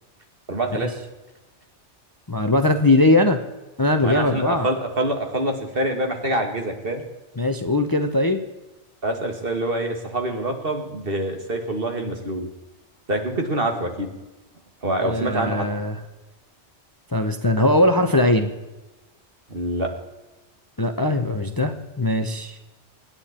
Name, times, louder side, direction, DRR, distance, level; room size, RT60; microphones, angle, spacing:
voice 1, 0.5-0.9 4.0-7.0 9.0-12.5 13.1-14.1 14.8-15.7 19.5-19.9, right 1 dB, 50° right, 4 dB, 2.3 m, -25 dB
voice 2, 2.3-3.4 3.8-4.7 7.4-8.4 15.0-16.0 17.1-18.5 20.8-22.6, left 2 dB, 20° left, 7 dB, 0.9 m, -20 dB
25.0 x 9.7 x 4.4 m, 1.1 s
omnidirectional pair, 1.2 m